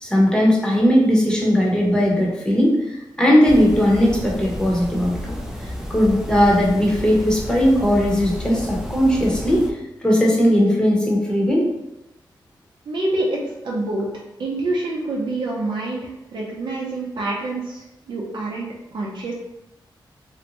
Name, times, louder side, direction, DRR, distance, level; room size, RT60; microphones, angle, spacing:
voice 1, 0.0-2.8 3.2-5.4 5.9-9.7 10.0-11.7, equal, 10° left, -2 dB, 0.8 m, -18 dB
sound 1, 3.4-9.7, equal, 5° right, 0.4 m, -31 dB
voice 2, 12.9-13.4 13.6-14.1 14.4-19.3, right 2 dB, 75° right, -4 dB, 0.6 m, -26 dB
2.5 x 2.1 x 2.9 m, 0.93 s
cardioid pair, 65°, 8 cm